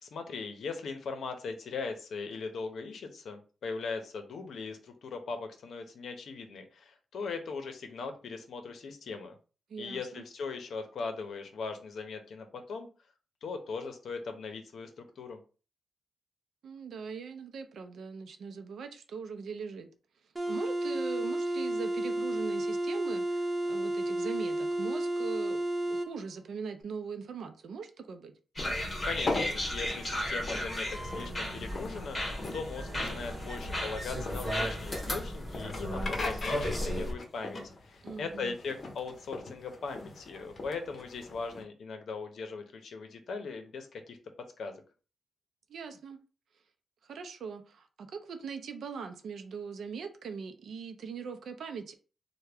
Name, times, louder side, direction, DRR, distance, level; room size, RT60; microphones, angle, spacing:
voice 1, 0.0-9.4 9.8-12.9 13.4-15.4 29.0-44.2 44.6-44.7, left 4 dB, 65° left, 0.6 m, -39 dB
voice 2, 9.7-10.2 16.6-19.9 20.5-28.3 38.0-38.6 45.7-46.2 47.0-51.9, right 6 dB, 70° right, 0.5 m, -41 dB
sound 1, 20.3-26.1, right 1 dB, 15° right, 0.4 m, -31 dB
sound 2, 28.6-41.6, left 2 dB, 35° left, 0.7 m, -40 dB
sound 3, 28.6-37.1, equal, 10° left, 1.4 m, -35 dB
3.3 x 2.2 x 3.4 m
wide cardioid pair, 170°, 0 cm